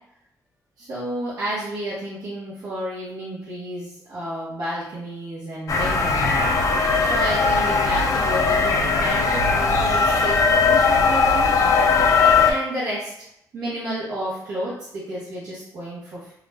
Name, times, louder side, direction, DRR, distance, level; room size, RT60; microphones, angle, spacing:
voice 1, 0.8-6.5 7.0-11.5 12.4-13.1 13.5-16.3, right 1 dB, 65° right, -9 dB, 0.8 m, -31 dB
sound 1, 5.7-12.5, left 4 dB, 55° left, 0.4 m, -19 dB
2.4 x 2.0 x 3.3 m, 0.75 s
wide cardioid pair, 165°, 7 cm